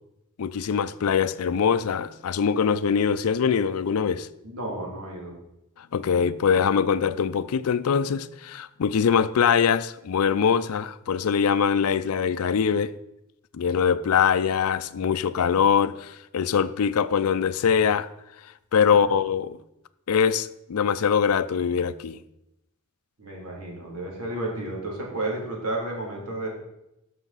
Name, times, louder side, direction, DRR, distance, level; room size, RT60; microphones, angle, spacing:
voice 1, 0.4-4.3 5.8-12.9 13.5-18.1 18.7-19.6 20.1-22.2, left 7 dB, 75° left, 0.4 m, -23 dB
voice 2, 4.4-5.3 23.2-26.5, right 2 dB, 85° right, 2.7 m, -32 dB
13.5 x 5.7 x 4.1 m
head